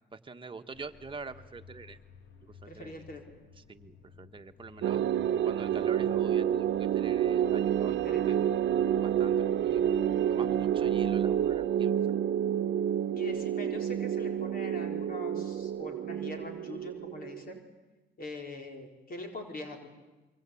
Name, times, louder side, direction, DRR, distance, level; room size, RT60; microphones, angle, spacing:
voice 1, 0.1-2.0 2.6-3.0 3.7-5.0 5.4-8.4 9.0-9.8 10.3-11.9, right 4 dB, 25° right, 7 dB, 1.5 m, -45 dB
sound 1, 0.7-11.7, left 5 dB, 70° left, 2.5 m, -54 dB
voice 2, 2.6-3.3 7.9-8.4 13.1-17.6 18.2-19.9, left 2 dB, 45° left, 3 dB, 4.4 m, -43 dB
sound 2, 4.8-17.6, right 9 dB, 70° right, 0.9 m, -29 dB
26.0 x 24.0 x 8.6 m, 1.1 s
cardioid pair, 90°, 20 cm